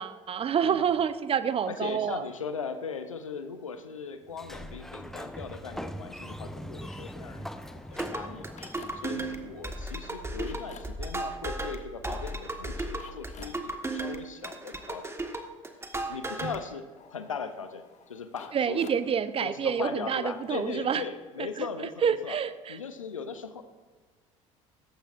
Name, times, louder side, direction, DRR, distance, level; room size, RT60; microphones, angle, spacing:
voice 1, 0.0-2.2 16.4-16.5 18.5-21.0 21.6-21.7 22.0-22.8, right 7 dB, 35° right, 14 dB, 0.7 m, -28 dB
voice 2, 1.7-15.2 16.1-18.9 19.4-22.4 22.7-23.6, left 5 dB, 90° left, 10 dB, 0.7 m, -39 dB
Sliding door, 4.3-10.0, equal, ahead, 0.7 m, -41 dB
sound 1, 6.8-9.2 9.5-20.8, left 7 dB, 45° left, 1.3 m, -55 dB
sound 2, 7.9-16.6, right 2 dB, 15° right, 1.5 m, -35 dB
17.0 x 14.0 x 2.6 m, 1.4 s
hypercardioid pair, 60°, 16 cm